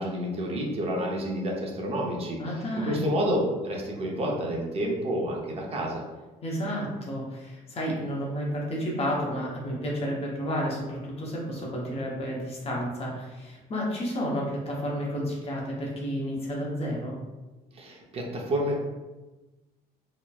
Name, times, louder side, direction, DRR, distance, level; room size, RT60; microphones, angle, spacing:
voice 1, 0.0-2.4 2.8-6.0 17.7-18.8, equal, 35° right, -1 dB, 0.6 m, -29 dB
voice 2, 2.4-3.1 6.4-17.2, equal, 35° left, -3 dB, 0.8 m, -31 dB
2.9 x 2.1 x 2.3 m, 1.1 s
cardioid pair, 110°, 17 cm